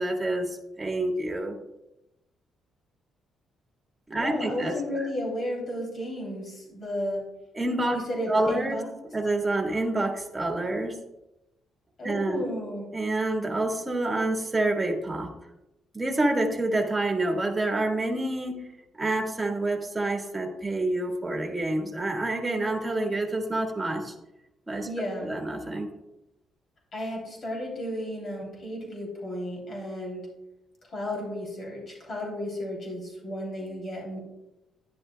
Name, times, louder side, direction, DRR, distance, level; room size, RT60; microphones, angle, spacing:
voice 1, 0.0-1.6 4.1-5.1 7.5-8.0 8.3-8.8 9.1-11.0 12.0-12.4 12.9-15.3 15.9-18.6 18.9-24.1 24.7-24.9 25.2-25.9, right 2 dB, 20° right, 2 dB, 1.5 m, -28 dB
voice 2, 4.1-7.2 7.9-8.9 12.0-12.9 24.8-25.3 26.9-30.3 30.9-34.2, left 1 dB, 50° left, -2 dB, 2.9 m, -33 dB
10.5 x 9.9 x 2.2 m, 0.91 s
cardioid pair, 90°, 0 cm